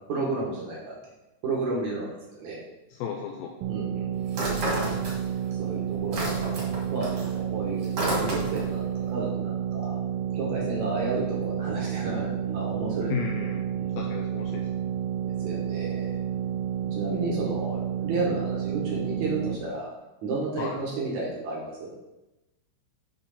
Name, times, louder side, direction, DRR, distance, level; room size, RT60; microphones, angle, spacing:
voice 1, 0.1-0.9 1.4-2.6 3.7-4.1 5.6-6.5 6.9-10.0 10.3-13.5 13.8-14.0 15.2-16.2 16.8-19.9 20.2-21.9, right 2 dB, 70° right, -4 dB, 1.8 m, -32 dB
voice 2, 2.9-3.5 13.1-13.7 14.0-14.7 20.6-20.8, left 7 dB, 90° left, 1 dB, 2.5 m, -34 dB
sound 1, 3.6-19.6, right 9 dB, 90° right, 3.2 m, -30 dB
sound 2, 4.3-5.5 5.8-8.8, right 1 dB, 55° right, 1.6 m, -31 dB
8.9 x 3.8 x 5.6 m, 1.0 s
omnidirectional pair, 5.7 m